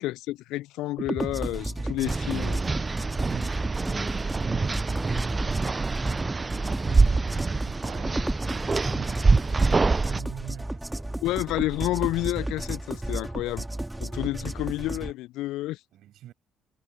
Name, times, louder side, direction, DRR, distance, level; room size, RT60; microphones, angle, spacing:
voice 1, 0.0-2.6 11.2-13.6 14.0-15.8, left 17 dB, 65° left, 0.4 m, -30 dB
sound 1, 1.0-15.1, right 1 dB, 10° right, 2.9 m, -33 dB
voice 2, 1.3-5.8 6.4-11.2 15.9-16.3, right 13 dB, 60° right, 7.5 m, -46 dB
sound 2, 2.0-10.2, right 3 dB, 25° right, 0.6 m, -25 dB
figure-of-eight pair, 45°, 0 cm